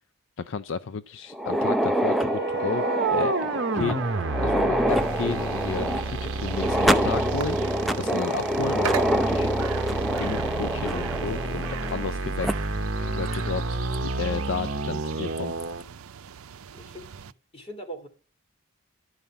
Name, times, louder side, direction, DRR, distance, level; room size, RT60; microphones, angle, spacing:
voice 1, 0.4-4.1 4.4-9.5 9.9-15.5, left 5 dB, 60° left, 0.4 m, -33 dB
sound 1, 1.3-12.1 12.4-12.5 13.3-13.4 13.9-14.0 15.4-15.6, equal, ahead, 0.5 m, -26 dB
sound 2, 1.9-15.8, right 3 dB, 55° right, 0.9 m, -30 dB
sound 3, 4.9-17.3, right 8 dB, 85° right, 0.5 m, -39 dB
voice 2, 16.7-18.1, right 1 dB, 25° left, 2.4 m, -41 dB
11.5 x 5.4 x 7.0 m
head